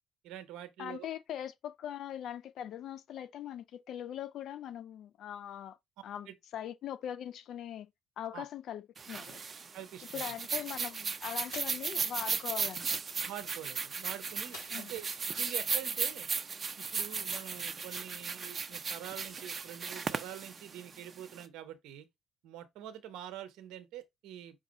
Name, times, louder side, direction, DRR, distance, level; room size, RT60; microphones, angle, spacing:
voice 1, 0.2-1.1 6.3-6.4 8.3-8.4 9.7-10.3 13.2-15.1 15.3-16.3 16.8-22.1 22.4-24.6, right 11 dB, 65° right, 0.9 m, -45 dB
voice 2, 0.8-5.8 6.0-9.4 10.1-13.0 14.7-14.9, left 10 dB, 60° left, 0.4 m, -41 dB
sound 1, 9.0-21.4, right 5 dB, 40° right, 0.5 m, -36 dB
sound 2, 11.5-11.9 14.5-15.1 15.5-15.6 16.0-16.1, left 3 dB, 80° left, 1.6 m, -49 dB
5.2 x 2.4 x 4.1 m
hypercardioid pair, 50°, 0 cm